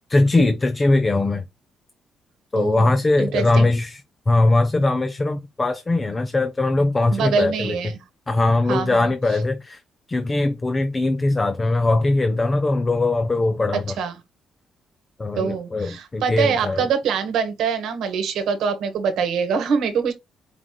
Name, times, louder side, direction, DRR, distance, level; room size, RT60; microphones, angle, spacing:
voice 1, 0.1-1.4 2.5-4.0 4.3-7.9 8.3-9.8 10.1-14.0 15.2-16.9, left 2 dB, 25° left, 0.5 m, -20 dB
voice 2, 2.6-2.9 3.2-3.7 7.1-7.9 8.7-9.1 14.0-14.1 15.4-20.1, right 6 dB, 80° right, 1.1 m, -24 dB
4.9 x 3.6 x 2.2 m
cardioid pair, 90°, 0 cm